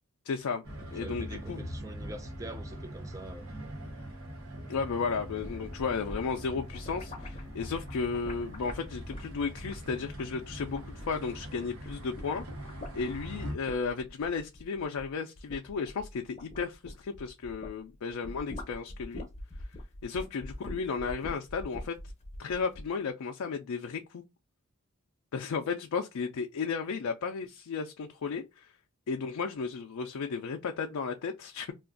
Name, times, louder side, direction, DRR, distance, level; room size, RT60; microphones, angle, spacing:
voice 1, 0.3-0.6 0.9-1.7 4.7-19.3 20.0-22.0 22.4-24.2 25.3-28.7 29.1-31.7, left 5 dB, 75° left, 0.4 m, -34 dB
sound 1, 0.6-13.6, equal, 70° right, 0.9 m, -42 dB
voice 2, 0.9-3.5, right 2 dB, 15° right, 0.3 m, -45 dB
sound 2, 5.2-11.4 11.7-17.8 18.1-22.9, left 1 dB, 30° left, 0.6 m, -44 dB
2.4 x 2.2 x 3.6 m
head